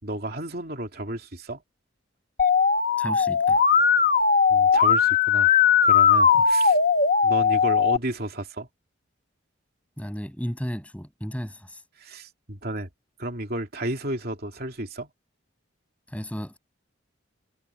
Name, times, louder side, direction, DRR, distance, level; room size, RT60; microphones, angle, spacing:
voice 1, 0.0-1.6 4.5-5.6 5.8-6.8 7.2-8.7 12.0-12.9 13.2-15.1, right 1 dB, 50° right, 3.0 m, -32 dB
Musical instrument, 2.4-8.0, left 6 dB, 40° left, 1.1 m, -19 dB
voice 2, 3.0-3.6 6.3-6.4 10.0-11.8 16.1-16.6, equal, 5° left, 7.4 m, -34 dB
head